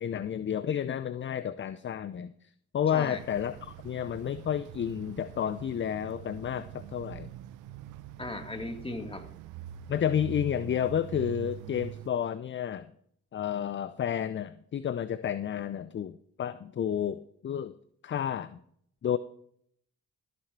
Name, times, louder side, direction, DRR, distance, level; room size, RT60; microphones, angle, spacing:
voice 1, 0.0-2.3 2.7-7.3 9.9-12.9 13.3-17.7 18.0-18.6 19.0-19.2, left 9 dB, 35° left, 14 dB, 0.6 m, -31 dB
sound 1, 3.1-12.1, right 12 dB, 70° right, 0.7 m, -44 dB
voice 2, 8.2-9.3, left 1 dB, 15° left, 5 dB, 2.3 m, -37 dB
14.0 x 6.8 x 4.6 m, 0.65 s
hypercardioid pair, 45°, 33 cm